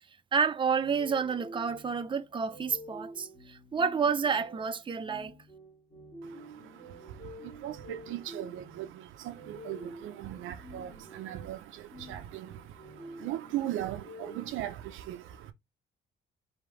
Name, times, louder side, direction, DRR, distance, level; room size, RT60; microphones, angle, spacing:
voice 1, 0.3-5.3, right 6 dB, 25° right, 0.6 m, -29 dB
sound 1, 0.8-14.5, equal, 25° left, 2.2 m, -49 dB
voice 2, 6.2-15.5, right 13 dB, 90° right, 0.7 m, -39 dB
5.2 x 2.8 x 3.2 m
cardioid pair, 90°, 20 cm